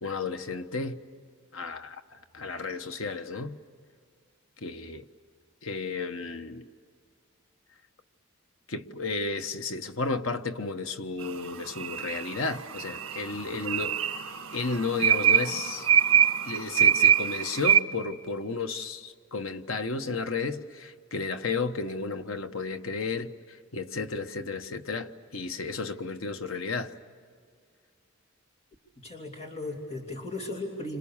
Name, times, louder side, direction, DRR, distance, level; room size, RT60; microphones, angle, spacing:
voice 1, 0.0-1.0 1.5-2.0 2.3-3.6 4.6-5.1 5.6-6.7 8.7-14.0 14.5-15.9 16.4-26.9, left 4 dB, 70° left, 1.2 m, -33 dB
sound 1, 11.2-17.8, right 9 dB, 75° right, 1.8 m, -25 dB
voice 2, 29.0-31.0, left 2 dB, 30° left, 2.8 m, -36 dB
29.5 x 26.5 x 7.2 m
head